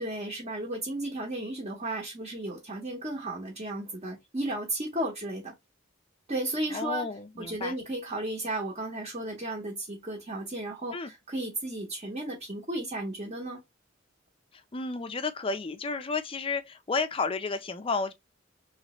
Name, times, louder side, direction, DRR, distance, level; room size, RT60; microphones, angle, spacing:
voice 1, 0.0-5.5 6.3-7.0 7.4-13.6, right 1 dB, 35° right, 1.0 m, -34 dB
voice 2, 6.7-7.8 10.9-11.1 14.5-18.1, left 4 dB, 25° left, 0.5 m, -32 dB
3.2 x 3.1 x 2.9 m
head